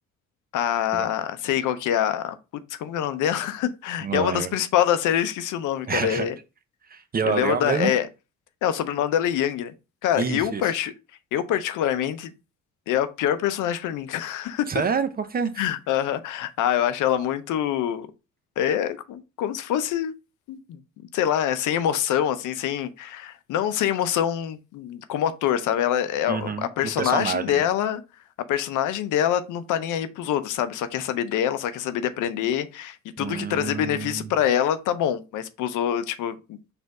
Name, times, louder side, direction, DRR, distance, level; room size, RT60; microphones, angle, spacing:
voice 1, 0.5-2.4 2.7-6.3 7.2-8.1 8.6-9.7 10.0-10.9 11.3-12.3 12.9-14.8 15.6-18.1 18.6-20.1 20.5-20.8 21.1-28.0 28.5-36.6, left 10 dB, 85° left, 0.6 m, -25 dB
voice 2, 4.0-4.6 5.9-6.3 6.9-7.9 10.2-10.7 14.7-15.6 26.3-26.7 27.0-27.6 33.2-34.3, right 6 dB, 30° right, 0.6 m, -27 dB
4.3 x 2.6 x 4.6 m
cardioid pair, 90°, 30 cm